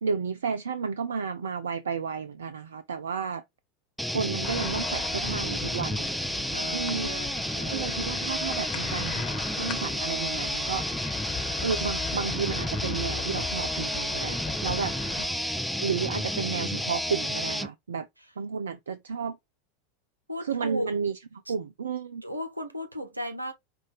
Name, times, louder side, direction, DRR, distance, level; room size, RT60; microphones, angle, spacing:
voice 1, 0.0-3.4 4.1-6.1 6.7-7.1 7.7-9.2 9.6-10.9 11.6-15.0 15.8-18.1 18.4-19.4 20.4-21.1 21.5-22.2, right 6 dB, 70° right, 0.3 m, -32 dB
sound 1, 4.0-17.7, equal, ahead, 0.5 m, -31 dB
sound 2, 4.4-15.3, left 7 dB, 45° left, 1.1 m, -39 dB
voice 2, 6.5-8.0 15.2-15.4 20.3-20.9 21.5-21.6 22.2-23.5, equal, 90° right, 0.8 m, -36 dB
5.4 x 2.5 x 3.4 m
figure-of-eight pair, 85°, 0 cm